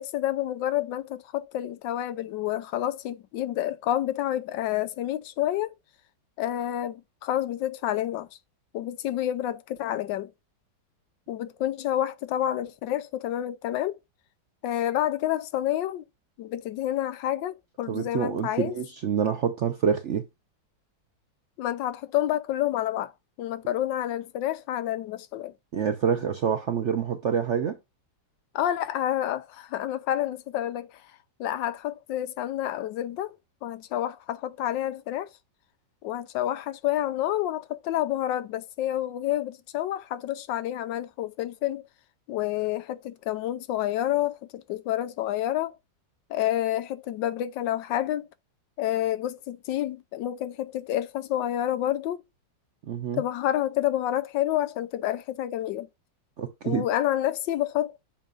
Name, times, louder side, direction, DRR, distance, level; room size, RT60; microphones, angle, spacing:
voice 1, 0.0-5.7 6.4-8.3 8.7-10.3 11.3-14.0 14.6-16.0 16.4-18.7 21.6-23.1 23.4-25.5 28.5-31.0 31.4-33.4 33.6-35.3 36.0-41.8 42.3-45.7 46.3-48.3 48.8-52.2 53.1-55.9 56.6-58.0, left 12 dB, 90° left, 1.3 m, -29 dB
voice 2, 17.9-20.2 25.7-27.8 52.9-53.2 56.4-56.8, right 7 dB, 65° right, 0.7 m, -27 dB
7.3 x 2.5 x 5.1 m
omnidirectional pair, 1.9 m